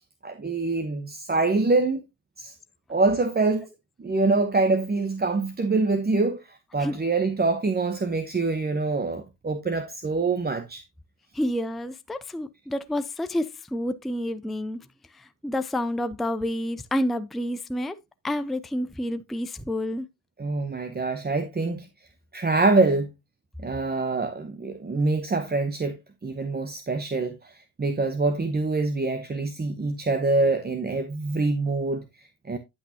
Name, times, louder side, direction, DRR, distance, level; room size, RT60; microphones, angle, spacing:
voice 1, 0.2-2.1 2.4-2.6 2.9-3.7 4.0-10.8 20.4-21.9 22.3-23.1 23.6-32.6, right 3 dB, 20° right, 0.9 m, -25 dB
voice 2, 11.3-18.0 18.2-20.1, left 1 dB, ahead, 0.5 m, -29 dB
9.9 x 6.0 x 2.8 m
supercardioid pair, 60°, 48 cm